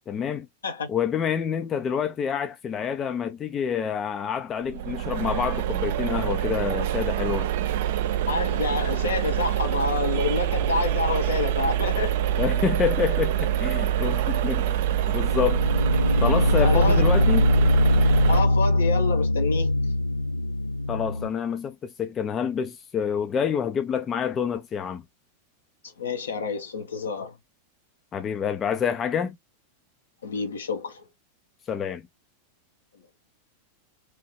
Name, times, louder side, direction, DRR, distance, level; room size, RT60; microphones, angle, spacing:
voice 1, 0.1-0.5 0.9-7.5 12.4-14.8 15.1-15.7 16.2-17.5 20.9-25.0 28.1-29.4 31.7-32.0, left 7 dB, 25° left, 0.4 m, -27 dB
sound 1, 4.7-18.4, right 11 dB, 50° right, 0.3 m, -25 dB
voice 2, 8.3-12.2 16.6-17.0 18.3-19.8 25.8-27.4 30.2-31.1, left 4 dB, 70° left, 0.9 m, -28 dB
sound 2, 12.7-13.0 15.1-21.3, left 1 dB, 85° left, 0.5 m, -22 dB
3.1 x 2.7 x 2.9 m
figure-of-eight pair, 90°, 0 cm